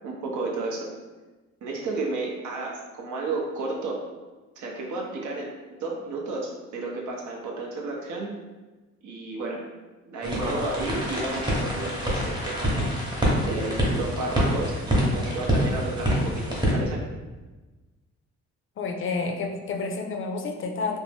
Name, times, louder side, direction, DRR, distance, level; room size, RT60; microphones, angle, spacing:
voice 1, 0.0-0.9 1.6-4.0 4.6-8.3 9.0-9.6 10.1-13.0 13.5-14.7 15.0-17.0, right 3 dB, 75° right, -1 dB, 0.7 m, -32 dB
sound 1, 10.2-16.7, equal, 15° right, 0.8 m, -26 dB
voice 2, 18.8-21.0, left 4 dB, 45° left, 4 dB, 0.4 m, -29 dB
2.5 x 2.0 x 3.3 m, 1.2 s
cardioid pair, 90°, 30 cm